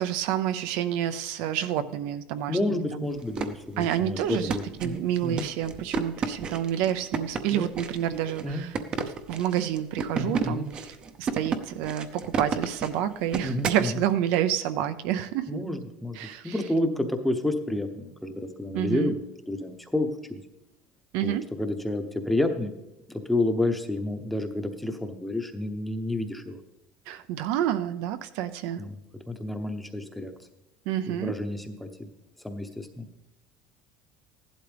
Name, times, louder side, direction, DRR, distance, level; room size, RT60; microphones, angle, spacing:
voice 1, 0.0-3.1 3.8-8.7 9.3-15.6 16.1-16.6 18.7-19.1 21.1-21.4 27.1-28.8 30.9-31.3, right 11 dB, 65° right, 10 dB, 0.6 m, -29 dB
voice 2, 2.5-5.5 7.5-7.7 8.4-8.7 10.1-10.7 13.4-14.0 15.5-16.2 16.4-20.4 21.2-22.7 23.1-26.6 28.8-29.0 29.3-30.3 31.1-32.1 32.4-33.1, left 1 dB, 5° left, 5 dB, 0.8 m, -30 dB
sound 1, 3.1-13.9, right 5 dB, 25° right, 0.7 m, -32 dB
15.5 x 11.5 x 3.4 m, 0.92 s
cardioid pair, 165°, 4 cm